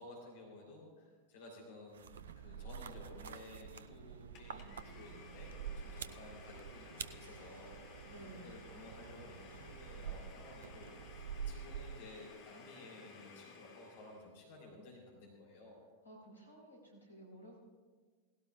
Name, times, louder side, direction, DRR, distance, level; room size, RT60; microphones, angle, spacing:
voice 1, 0.0-15.8, left 2 dB, 55° left, -2 dB, 3.4 m, -55 dB
sound 1, 1.9-12.3, right 7 dB, 65° right, 0.5 m, -48 dB
Domestic sounds home sounds, 4.3-14.3, left 4 dB, 40° left, 2.4 m, -56 dB
voice 2, 8.1-8.5 16.0-17.6, right 1 dB, 80° left, -1 dB, 4.0 m, -54 dB
18.5 x 17.0 x 2.4 m, 1.5 s
figure-of-eight pair, 90°, 0 cm